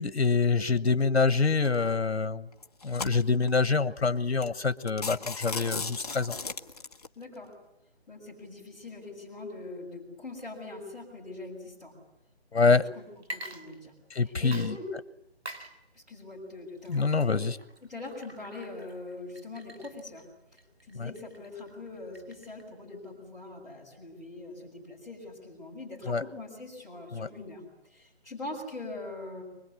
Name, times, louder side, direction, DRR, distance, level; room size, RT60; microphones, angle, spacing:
voice 1, 0.0-2.5 2.8-6.4 12.5-12.8 14.1-14.7 16.9-17.6 20.9-21.1 26.1-26.2 27.1-27.3, left 4 dB, 85° left, 14 dB, 1.3 m, -26 dB
sound 1, 1.6-1.9 2.5-3.5 4.1-4.2 4.4-4.6 4.9-7.1, left 4 dB, 35° left, 1.2 m, -36 dB
voice 2, 7.1-7.5 8.1-11.9 12.6-13.0 13.3-14.9 15.9-17.4 17.8-20.3 20.9-29.4, left 2 dB, ahead, -11 dB, 6.3 m, -42 dB
Water / Liquid, 13.2-14.2 14.5-22.7, right 1 dB, 75° right, 3.4 m, -47 dB
24.0 x 22.0 x 9.7 m, 0.84 s
figure-of-eight pair, 165°, 32 cm